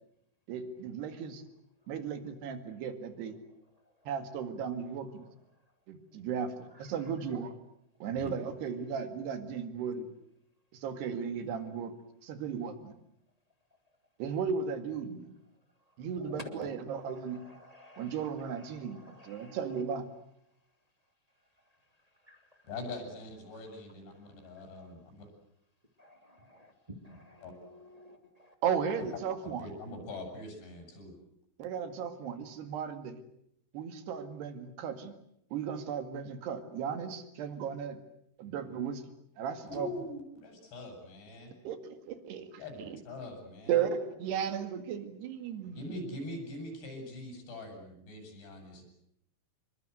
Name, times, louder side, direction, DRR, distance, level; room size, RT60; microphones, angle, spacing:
voice 1, 0.5-1.4 1.9-3.4 4.1-5.2 5.9-7.5 8.0-10.1 10.7-11.9 12.2-13.0 14.2-15.4 16.0-17.4 18.0-20.1 28.6-29.7 31.6-33.2 33.7-35.1 35.5-38.0 38.4-39.0 39.4-39.9 41.7-43.0 43.7-45.9, right 7 dB, 75° right, 8 dB, 4.0 m, -35 dB
voice 2, 2.9-3.3 3.8-4.1 5.2-5.3 6.6-7.1 15.9-16.7 17.0-19.8 21.6-21.8 22.1-22.7 24.2-24.9 26.0-28.5, left 1 dB, 10° right, 4 dB, 2.0 m, -53 dB
voice 3, 22.6-25.3 27.4-27.5 29.1-29.2 29.6-31.2 39.7-41.5 42.6-43.9 45.7-48.8, left 2 dB, 75° left, 4 dB, 9.0 m, -43 dB
27.0 x 23.0 x 8.0 m, 0.75 s
omnidirectional pair, 4.9 m